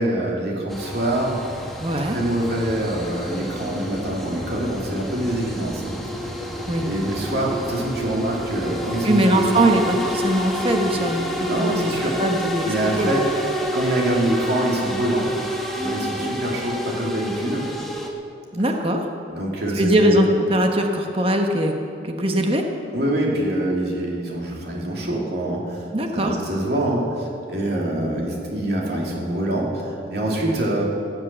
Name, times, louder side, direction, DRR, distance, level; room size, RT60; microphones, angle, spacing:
voice 1, 0.0-1.4 2.0-5.9 6.7-9.7 11.5-12.2 12.6-13.3 13.7-15.3 15.8-17.6 19.3-20.2 22.9-25.9 26.1-30.8, right 1 dB, 60° right, -2 dB, 2.8 m, -25 dB
sound 1, 0.7-18.1, equal, ahead, 1.2 m, -29 dB
voice 2, 1.8-2.2 6.7-6.9 9.0-11.9 12.2-12.6 13.0-13.1 18.5-19.1 19.8-21.7 22.0-22.6 25.9-26.4, right 1 dB, 30° right, 3 dB, 1.1 m, -21 dB
17.0 x 7.5 x 7.3 m, 2.8 s
head